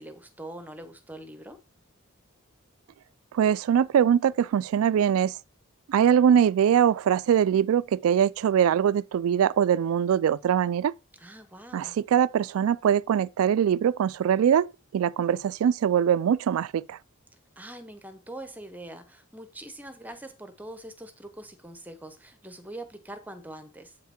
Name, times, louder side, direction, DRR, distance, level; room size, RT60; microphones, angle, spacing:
voice 1, 0.0-1.6 11.1-11.9 17.6-24.0, right 1 dB, 10° right, 0.7 m, -43 dB
voice 2, 3.3-5.4 5.9-10.9 11.7-14.7 14.9-17.0, right 8 dB, 80° right, 0.3 m, -22 dB
8.2 x 5.8 x 4.3 m
head